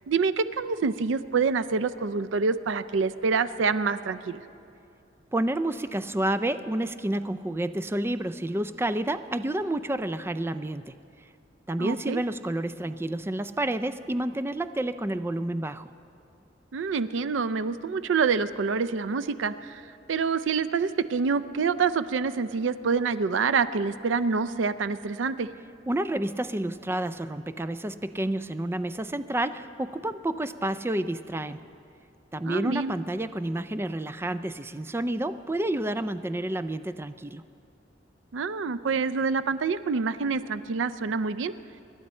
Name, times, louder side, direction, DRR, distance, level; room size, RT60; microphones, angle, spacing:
voice 1, 0.1-4.4 11.8-12.2 16.7-19.8 20.1-25.5 32.4-32.9 38.3-41.5, right 5 dB, 80° right, 14 dB, 0.4 m, -26 dB
voice 2, 5.3-10.9 11.7-15.9 25.9-31.6 32.3-37.4, right 1 dB, 15° right, 11 dB, 0.3 m, -29 dB
25.5 x 11.5 x 4.3 m, 2.6 s
head